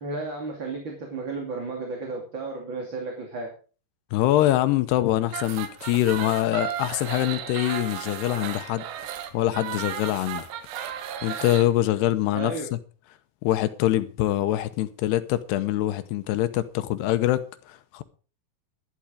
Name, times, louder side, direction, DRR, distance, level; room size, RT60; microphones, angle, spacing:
voice 1, 0.0-3.5 12.3-12.7, right 3 dB, 35° right, 2.7 m, -33 dB
voice 2, 4.1-8.8 9.3-10.5 11.2-12.8 13.4-18.0, left 14 dB, 80° left, 2.9 m, -24 dB
sound 1, 5.3-11.7, right 10 dB, 85° right, 3.4 m, -34 dB
11.5 x 11.5 x 5.1 m
omnidirectional pair, 4.8 m